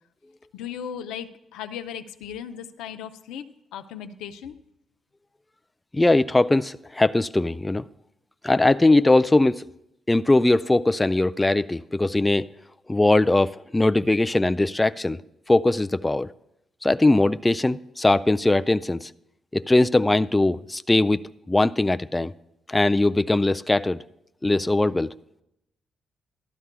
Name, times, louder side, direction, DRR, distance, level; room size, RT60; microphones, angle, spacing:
voice 1, 0.5-3.5 3.7-4.6, left 8 dB, 80° left, 0.5 m, -36 dB
voice 2, 5.9-7.8 8.4-9.7 10.1-12.5 12.9-15.2 15.5-16.3 16.8-19.1 19.5-21.2 21.5-22.3 22.7-24.0 24.4-25.1, left 2 dB, 20° left, 0.3 m, -20 dB
14.5 x 12.5 x 2.2 m
hypercardioid pair, 45°, 0 cm